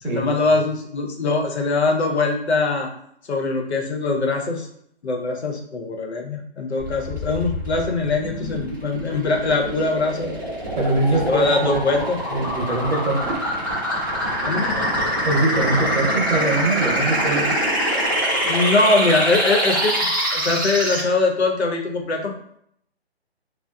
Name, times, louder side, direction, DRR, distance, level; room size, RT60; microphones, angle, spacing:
voice 1, 0.0-2.9 3.3-4.7 5.0-10.3 11.1-12.2 14.4-14.8 18.4-20.0 20.3-22.3, left 3 dB, 85° left, 2 dB, 0.8 m, -22 dB
sound 1, 6.8-21.0, equal, 20° right, 0.4 m, -24 dB
voice 2, 10.8-11.8 12.3-13.4 15.2-17.7, right 2 dB, 50° right, -1 dB, 0.9 m, -22 dB
2.8 x 2.0 x 2.3 m, 0.69 s
hypercardioid pair, 160°, 32 cm